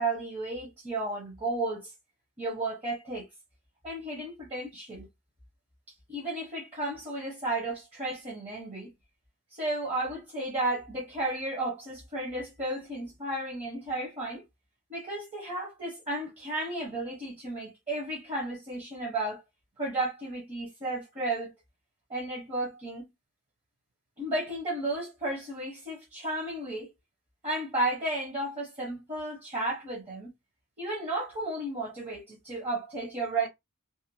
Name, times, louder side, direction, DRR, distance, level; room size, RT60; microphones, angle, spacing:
voice 1, 0.0-1.9 2.4-3.3 3.8-5.1 6.1-8.9 9.5-14.4 14.9-19.4 19.8-21.5 22.1-23.0 24.2-26.9 27.4-30.3 30.8-33.5, right 2 dB, 30° right, 1.0 m, -33 dB
2.8 x 2.2 x 2.7 m
head